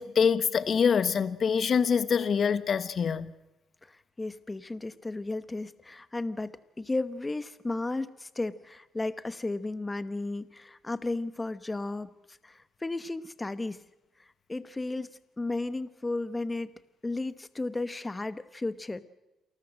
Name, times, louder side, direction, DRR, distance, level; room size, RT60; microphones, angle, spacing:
voice 1, 0.0-3.3, left 6 dB, 50° left, 1.2 m, -25 dB
voice 2, 3.9-12.1 12.4-13.8 14.5-19.0, left 2 dB, 20° left, 1.1 m, -34 dB
28.0 x 14.0 x 7.7 m
cardioid pair, 90°, 0 cm